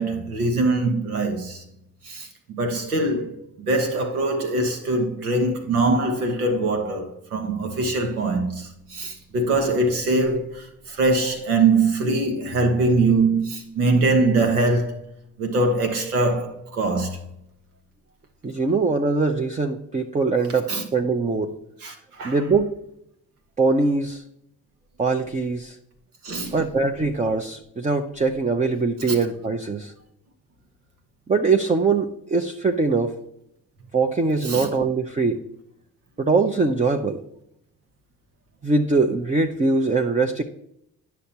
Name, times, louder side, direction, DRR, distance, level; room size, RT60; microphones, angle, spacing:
voice 1, 0.0-1.6 2.0-15.0 15.4-17.2 20.7-20.8 21.8-22.4 26.2-26.5 29.1-29.2 34.4-34.7, right 2 dB, 90° right, 1.1 m, -23 dB
voice 2, 18.4-21.5 22.2-22.7 23.6-24.2 25.0-25.8 26.5-29.9 31.3-33.1 33.9-35.4 36.2-37.2 38.6-40.4, right 3 dB, 15° right, 0.6 m, -22 dB
10.0 x 5.8 x 2.8 m
hypercardioid pair, 45°, 43 cm